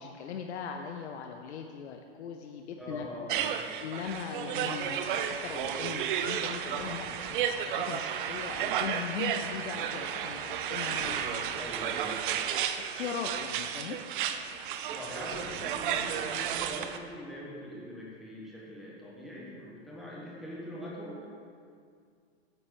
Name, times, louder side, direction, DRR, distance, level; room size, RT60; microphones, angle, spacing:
voice 1, 0.0-3.1 3.8-11.6 12.5-14.0, left 7 dB, 90° left, 4 dB, 0.7 m, -39 dB
voice 2, 2.8-3.6 11.5-12.2 14.9-21.3, left 1 dB, ahead, -5 dB, 1.5 m, -42 dB
sound 1, 3.3-17.0, right 9 dB, 50° right, 0.6 m, -33 dB
sound 2, 6.7-8.1 11.0-12.1 15.3-16.6, left 4 dB, 45° left, 1.0 m, -49 dB
9.7 x 4.3 x 7.2 m, 2.2 s
supercardioid pair, 155°, 33 cm